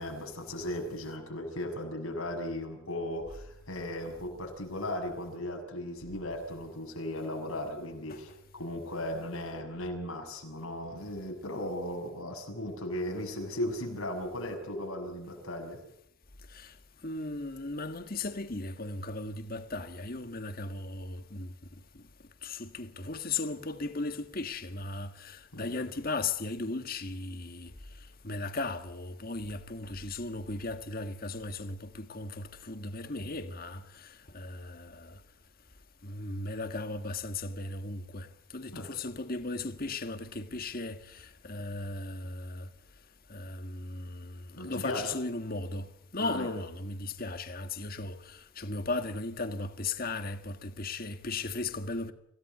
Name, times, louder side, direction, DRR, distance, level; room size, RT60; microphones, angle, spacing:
voice 1, 0.0-15.8 25.5-25.7 38.7-38.9 44.6-45.2 46.2-46.5, left 1 dB, 85° left, 6.7 m, -37 dB
voice 2, 17.0-21.5 22.4-27.7 28.2-35.2 36.0-38.3 38.5-42.7 43.3-52.1, left 3 dB, 45° left, 1.7 m, -36 dB
26.5 x 17.0 x 8.1 m
head